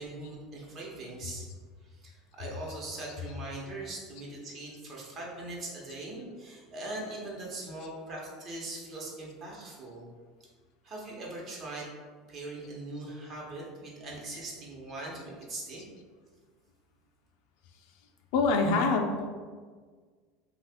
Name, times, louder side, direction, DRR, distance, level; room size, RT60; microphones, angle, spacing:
voice 1, 0.0-1.4 1.8-10.1 10.8-11.9 12.3-15.8, right 2 dB, 45° right, -3 dB, 0.9 m, -41 dB
voice 2, 18.3-19.3, left 3 dB, 70° left, 4 dB, 0.4 m, -25 dB
2.8 x 2.4 x 3.4 m, 1.5 s
supercardioid pair, 115°, 0 cm